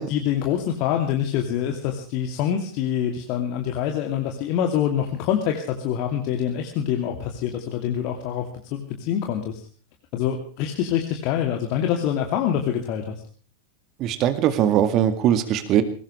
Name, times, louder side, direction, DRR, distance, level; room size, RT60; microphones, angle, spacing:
voice 1, 0.1-8.4 8.7-9.6 10.1-13.2, left 9 dB, 40° left, 3 dB, 2.6 m, -25 dB
voice 2, 14.0-15.8, right 10 dB, 35° right, 10 dB, 2.0 m, -20 dB
22.0 x 19.5 x 3.3 m, 0.41 s
figure-of-eight pair, 90°, 0 cm